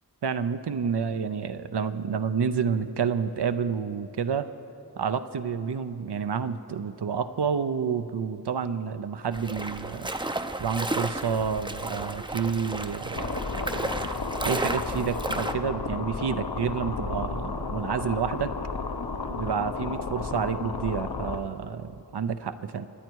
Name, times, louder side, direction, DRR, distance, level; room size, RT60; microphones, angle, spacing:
voice 1, 0.2-4.5 5.0-10.1 10.6-13.8 14.4-18.5 19.3-22.9, right 6 dB, 75° right, 11 dB, 0.6 m, -29 dB
sound 1, 9.3-15.5, right 2 dB, 10° right, 0.5 m, -33 dB
sound 2, 13.1-21.4, left 4 dB, 60° left, 0.9 m, -33 dB
27.5 x 9.2 x 4.6 m, 2.7 s
wide cardioid pair, 65°, 41 cm